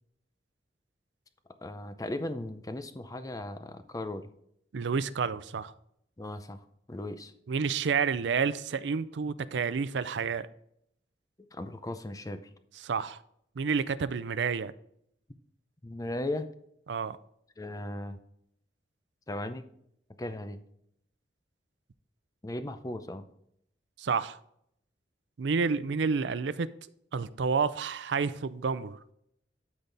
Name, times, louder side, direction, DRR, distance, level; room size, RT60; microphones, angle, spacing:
voice 1, 1.6-4.3 6.2-7.3 11.5-12.5 15.8-16.5 17.6-18.2 19.3-19.7 20.2-20.6 22.4-23.3, left 1 dB, 20° left, 0.6 m, -37 dB
voice 2, 4.7-5.7 7.5-10.5 12.8-13.2 13.6-14.7 16.9-17.2 24.0-24.4 25.4-26.7 27.1-29.0, right 5 dB, 85° right, 0.5 m, -29 dB
12.0 x 4.1 x 3.4 m
head